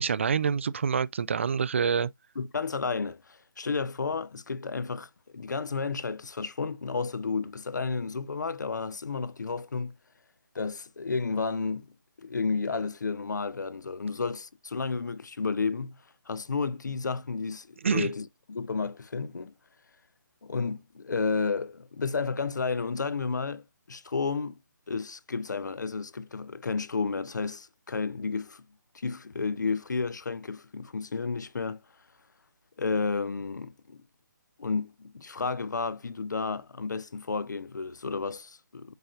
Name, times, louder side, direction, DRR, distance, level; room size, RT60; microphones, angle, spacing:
voice 1, 0.0-2.1 17.8-18.1, right 6 dB, 40° right, 0.4 m, -26 dB
voice 2, 2.4-9.9 10.5-11.9 12.2-16.0 16.3-19.5 20.4-24.6 24.9-28.6 28.9-31.8 32.8-34.0 34.6-38.9, left 4 dB, 60° left, 0.7 m, -32 dB
8.0 x 5.1 x 2.5 m
figure-of-eight pair, 150°, 11 cm